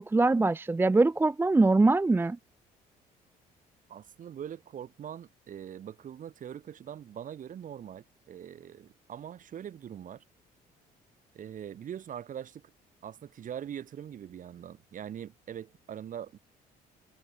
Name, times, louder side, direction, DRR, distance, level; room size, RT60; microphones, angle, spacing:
voice 1, 0.0-2.4, right 3 dB, 15° right, 0.6 m, -23 dB
voice 2, 3.9-10.2 11.3-12.7 13.0-16.4, right 9 dB, 50° right, 5.1 m, -42 dB
cardioid pair, 110°, 17 cm